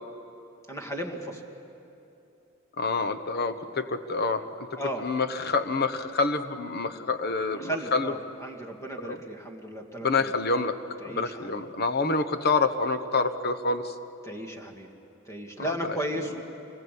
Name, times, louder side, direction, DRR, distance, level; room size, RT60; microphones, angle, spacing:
voice 1, 0.7-1.4 4.8-5.1 7.5-10.3 11.0-11.6 14.2-14.9 15.3-16.4, right 1 dB, 15° left, 2 dB, 2.2 m, -35 dB
voice 2, 2.8-4.7 5.0-8.1 10.0-10.7 11.0-13.9, left 3 dB, 50° left, 8 dB, 1.2 m, -27 dB
26.5 x 20.5 x 8.5 m, 2.8 s
head